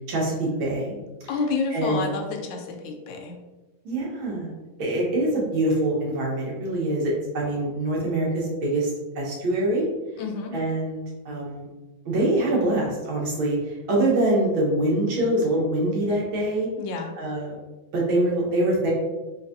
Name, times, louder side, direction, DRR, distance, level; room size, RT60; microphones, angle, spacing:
voice 1, 0.1-1.0 1.7-2.1 3.9-4.5 4.8-9.9 10.5-11.7 12.1-16.7 17.2-17.6 17.9-18.9, right 1 dB, 80° right, -3 dB, 1.8 m, -24 dB
voice 2, 1.3-3.4 10.2-10.5 16.8-17.1, left 4 dB, 75° left, 3 dB, 1.3 m, -29 dB
4.6 x 2.6 x 2.5 m, 1.2 s
omnidirectional pair, 2.2 m